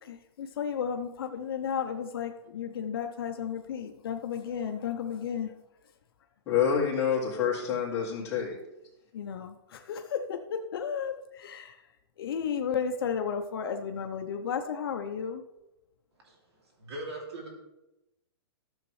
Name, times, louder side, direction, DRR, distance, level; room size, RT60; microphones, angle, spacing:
voice 1, 0.0-5.5 9.1-11.8 12.2-15.4, left 7 dB, 60° left, 6 dB, 0.7 m, -33 dB
voice 2, 6.5-8.6, left 7 dB, 20° left, -6 dB, 2.2 m, -27 dB
voice 3, 16.8-17.5, right 1 dB, 75° right, 0 dB, 2.7 m, -39 dB
13.0 x 7.1 x 3.2 m, 0.96 s
hypercardioid pair, 165°, 14 cm